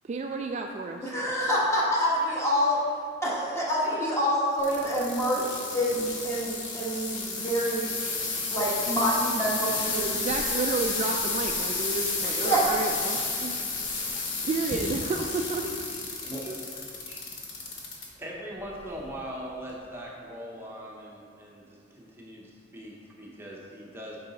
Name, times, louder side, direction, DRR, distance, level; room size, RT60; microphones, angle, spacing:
voice 1, 0.0-1.1 10.1-13.6 14.4-15.8 16.5-16.6, right 3 dB, 35° right, 3 dB, 0.3 m, -31 dB
voice 2, 1.0-2.8 3.2-7.9 8.5-10.2 12.3-12.7, equal, 15° left, -5 dB, 1.3 m, -27 dB
sound 1, 4.6-18.1 18.6-19.0 19.7-19.8, left 3 dB, 70° left, 1.1 m, -32 dB
voice 3, 18.2-24.2, equal, 10° right, -4 dB, 0.7 m, -41 dB
6.6 x 4.7 x 4.0 m, 2.1 s
head